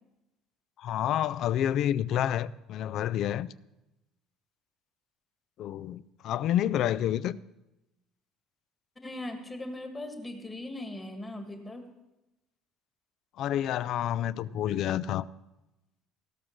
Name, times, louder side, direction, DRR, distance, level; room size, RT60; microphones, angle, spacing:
voice 1, 0.8-3.5 5.6-7.4 13.4-15.2, left 11 dB, 50° left, 0.3 m, -29 dB
voice 2, 9.0-11.8, left 1 dB, 10° left, 1.5 m, -39 dB
16.5 x 6.3 x 6.4 m
cardioid pair, 160°, 0 cm